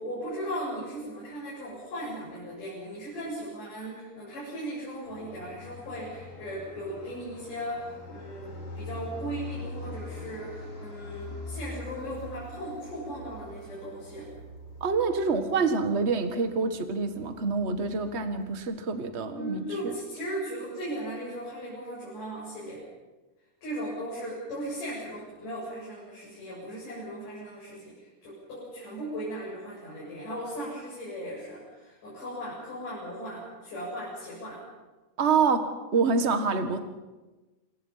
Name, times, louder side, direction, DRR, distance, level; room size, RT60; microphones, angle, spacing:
voice 1, 0.0-14.3 19.3-22.8 23.6-27.9 28.2-34.6, right 1 dB, 85° left, -7 dB, 9.2 m, -37 dB
Fixed-wing aircraft airplane, 5.0-18.6, left 2 dB, 50° left, 6.4 m, -43 dB
voice 2, 14.8-19.9 35.2-36.8, right 4 dB, 35° right, 8 dB, 1.1 m, -26 dB
28.0 x 22.0 x 5.7 m, 1.2 s
omnidirectional pair, 3.6 m